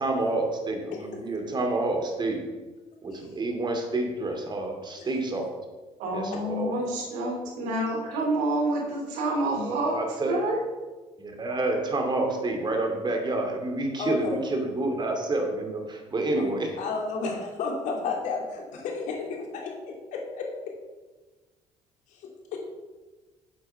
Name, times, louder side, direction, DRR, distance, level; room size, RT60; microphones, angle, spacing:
voice 1, 0.0-2.4 3.0-5.6 6.1-6.8 9.3-10.4 11.2-16.8, right 2 dB, 35° right, 3 dB, 2.5 m, -29 dB
voice 2, 6.0-10.0 10.3-10.6, right 1 dB, 85° right, 0 dB, 3.0 m, -28 dB
voice 3, 14.0-14.4 16.8-20.5 22.1-22.2 22.5-22.6, left 4 dB, 75° left, 0 dB, 2.6 m, -32 dB
8.3 x 7.7 x 5.7 m, 1.2 s
supercardioid pair, 80°, 13 cm